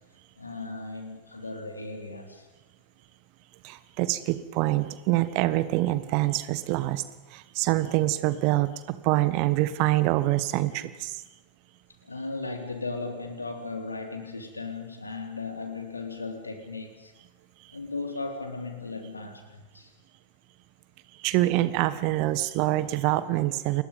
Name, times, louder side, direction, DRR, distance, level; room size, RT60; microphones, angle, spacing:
voice 1, 0.4-2.5 10.8-10.9 12.0-17.1 17.7-19.9, left 3 dB, 80° left, 4 dB, 3.5 m, -36 dB
voice 2, 3.6-7.0 7.3-11.2 21.2-23.8, right 17 dB, 45° right, 14 dB, 1.4 m, -25 dB
29.5 x 21.5 x 5.4 m, 1.1 s
figure-of-eight pair, 90°, 0 cm